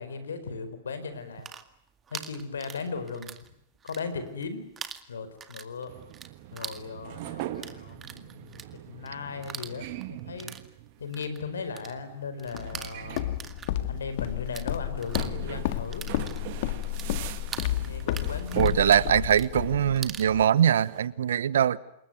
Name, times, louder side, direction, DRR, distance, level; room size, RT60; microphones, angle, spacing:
voice 1, 0.0-1.5 2.1-3.3 3.8-4.6 5.1-6.0 6.5-10.5 11.0-13.2 13.8-16.1 17.7-19.0, left 5 dB, 80° left, 11 dB, 4.5 m, -37 dB
sound 1, 1.2-3.5 3.8-4.5 4.8-14.7 15.0-20.3, right 7 dB, 20° right, 2.0 m, -43 dB
sound 2, 5.9-21.1, right 15 dB, 50° right, 1.9 m, -42 dB
Walk footsteps, 12.5-20.4, left 13 dB, 55° left, 1.9 m, -32 dB
voice 2, 18.6-21.8, right 9 dB, 70° right, 19 dB, 1.1 m, -22 dB
27.5 x 22.0 x 9.3 m, 0.78 s
hypercardioid pair, 105°, 0 cm